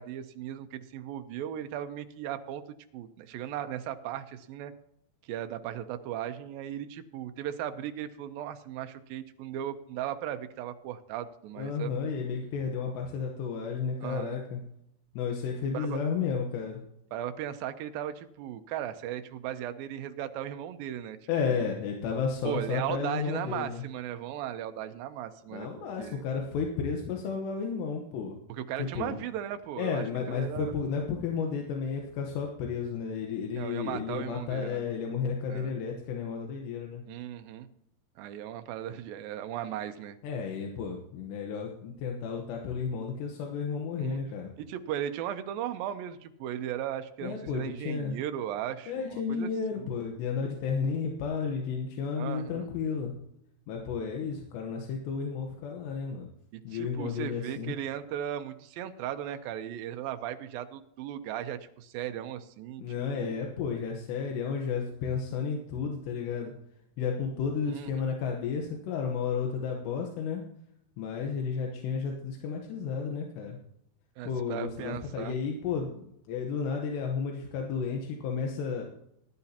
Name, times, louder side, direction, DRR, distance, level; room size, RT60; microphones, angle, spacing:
voice 1, 0.0-2.6 2.9-4.7 5.3-11.9 14.0-14.4 15.7-16.0 17.1-21.7 22.5-25.7 26.0-26.2 28.5-30.7 33.5-34.9 35.5-35.7 37.1-37.7 38.2-40.2 44.0-44.2 44.6-49.5 52.2-52.7 56.5-62.8 63.1-63.4 67.7-68.1 74.2-75.4, right 11 dB, 80° right, 8 dB, 2.2 m, -37 dB
voice 2, 11.6-14.6 15.1-16.8 21.3-23.8 25.5-28.4 28.9-29.2 29.8-37.0 40.2-44.5 47.2-48.1 48.9-53.1 53.7-56.3 56.6-57.7 62.8-66.5 67.0-70.4 71.0-73.6 74.2-78.8, left 6 dB, 90° left, 1 dB, 3.4 m, -32 dB
19.0 x 11.0 x 2.9 m, 0.76 s
omnidirectional pair, 4.8 m